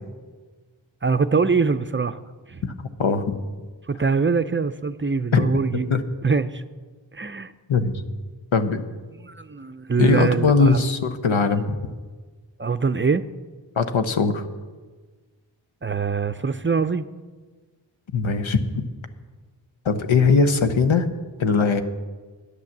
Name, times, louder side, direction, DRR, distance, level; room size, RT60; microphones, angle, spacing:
voice 1, 1.0-2.2 2.5-2.6 3.9-6.0 6.2-6.6 7.1-7.5 9.1-10.8 12.6-13.2 15.8-17.1, right 5 dB, 25° right, 12 dB, 0.5 m, -23 dB
voice 2, 3.0-3.4 5.3-5.5 5.9-6.0 7.7-8.0 8.5-8.8 10.0-11.8 13.8-14.4 18.1-18.9 19.8-21.1 21.4-21.8, left 4 dB, 90° left, 8 dB, 0.9 m, -20 dB
9.7 x 9.4 x 7.2 m, 1.4 s
cardioid pair, 40°, 46 cm